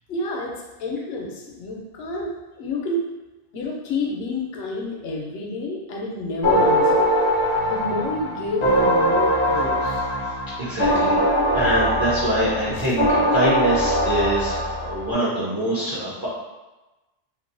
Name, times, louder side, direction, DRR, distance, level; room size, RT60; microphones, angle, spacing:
voice 1, 0.1-3.0 3.5-7.1 7.6-10.0 12.7-12.9, left 2 dB, 75° left, -1 dB, 0.8 m, -29 dB
sound 1, 6.4-15.1, equal, 40° left, 0.4 m, -21 dB
voice 2, 10.6-11.2 11.5-16.3, right 1 dB, 30° right, -8 dB, 0.4 m, -24 dB
2.5 x 2.0 x 2.5 m, 1.1 s
omnidirectional pair, 1.0 m